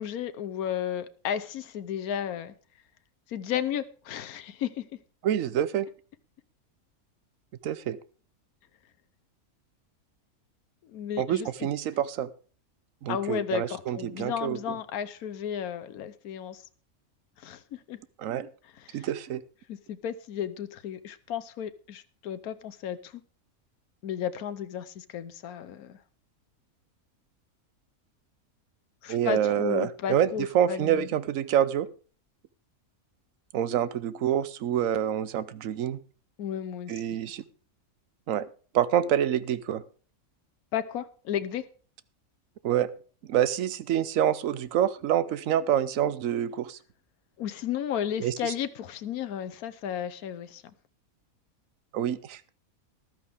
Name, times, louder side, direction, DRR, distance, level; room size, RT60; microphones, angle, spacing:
voice 1, 0.0-2.5 3.3-4.9 10.9-11.5 13.1-16.6 17.4-18.0 18.8-19.1 19.7-23.2 24.0-26.0 29.0-31.1 36.4-36.9 40.7-41.6 47.4-50.6, left 9 dB, 85° left, 1.3 m, -33 dB
voice 2, 5.2-5.9 7.6-8.0 11.2-12.3 13.0-14.6 18.2-18.5 18.9-19.4 29.1-31.9 33.5-36.0 36.9-37.4 38.3-38.5 38.7-39.8 42.6-42.9 43.3-46.8 48.2-48.5 51.9-52.4, right 10 dB, 65° right, 1.1 m, -27 dB
14.0 x 12.0 x 3.5 m
omnidirectional pair, 1.5 m